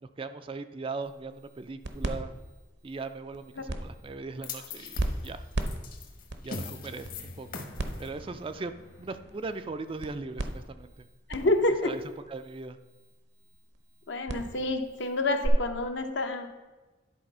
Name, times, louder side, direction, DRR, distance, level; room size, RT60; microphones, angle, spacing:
voice 1, 0.0-2.3 2.8-5.4 6.4-7.6 8.0-11.1 11.8-12.0 12.3-12.8, right 3 dB, 30° right, 10 dB, 0.3 m, -39 dB
sound 1, 1.0-15.5, right 1 dB, 60° right, 0.8 m, -39 dB
sound 2, 4.4-10.7, left 4 dB, 50° left, 1.1 m, -43 dB
voice 2, 11.3-11.9 14.1-16.5, left 2 dB, 65° left, 6 dB, 0.8 m, -28 dB
10.5 x 4.1 x 5.4 m, 1.2 s
head